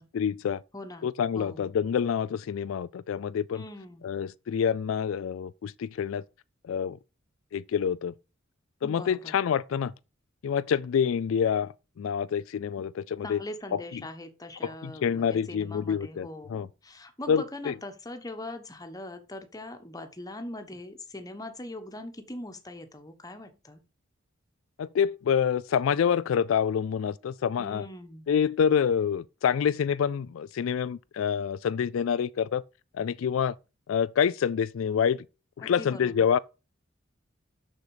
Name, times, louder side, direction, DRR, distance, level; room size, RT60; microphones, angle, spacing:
voice 1, 0.1-0.6 1.0-3.6 4.0-6.2 6.6-7.0 7.5-8.1 8.8-9.9 10.4-13.4 13.7-13.8 14.6-16.7 17.3-17.7 24.8-27.9 28.3-32.6 32.9-33.6 33.9-35.3 35.6-36.4, left 7 dB, 85° left, 0.3 m, -27 dB
voice 2, 0.7-1.1 1.3-1.7 3.5-4.1 8.8-9.3 13.2-23.8 27.6-28.3 35.6-36.3, left 1 dB, 20° left, 1.2 m, -41 dB
6.7 x 6.4 x 4.9 m
head